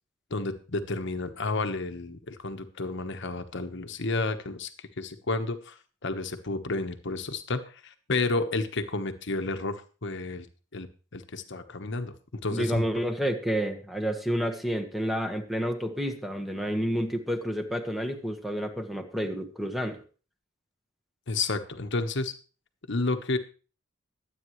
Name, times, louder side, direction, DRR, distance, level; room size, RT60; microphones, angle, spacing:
voice 1, 0.3-10.5 10.7-10.9 11.1-12.1 12.4-12.8 21.3-22.3 22.9-23.4, left 3 dB, 65° left, 8 dB, 1.2 m, -31 dB
voice 2, 12.5-20.0, equal, ahead, 4 dB, 1.5 m, -30 dB
22.0 x 8.9 x 3.2 m, 0.36 s
head